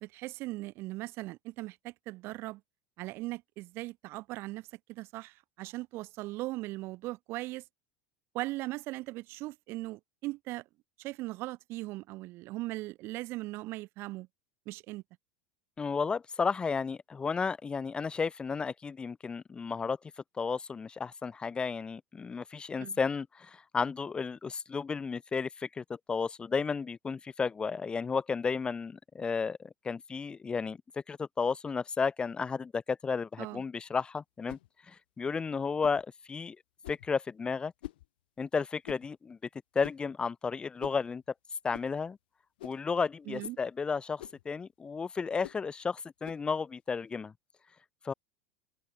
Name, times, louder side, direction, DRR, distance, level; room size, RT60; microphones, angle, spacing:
voice 1, 0.0-2.6 3.0-7.6 8.3-10.6 11.0-14.3 14.7-15.0 22.8-23.0 33.4-33.6 43.3-43.6, right 19 dB, 50° right, 1.1 m, -39 dB
voice 2, 15.8-20.0 20.4-30.8 31.1-34.6 34.9-36.6 36.9-37.7 38.4-39.4 39.7-41.2 41.6-42.2 42.6-47.3 48.0-48.1, left 5 dB, 20° left, 1.0 m, -33 dB
sound 1, 34.5-34.7 35.8-36.0 36.8-37.1 37.8-38.1 38.8-39.1 39.8-40.1 40.8-41.0 41.7-41.9 42.6-42.9 43.4-43.6 44.2-44.4 45.4-45.6 46.2-46.5, left 16 dB, 80° left, 4.2 m, -46 dB
supercardioid pair, 115°, 5 cm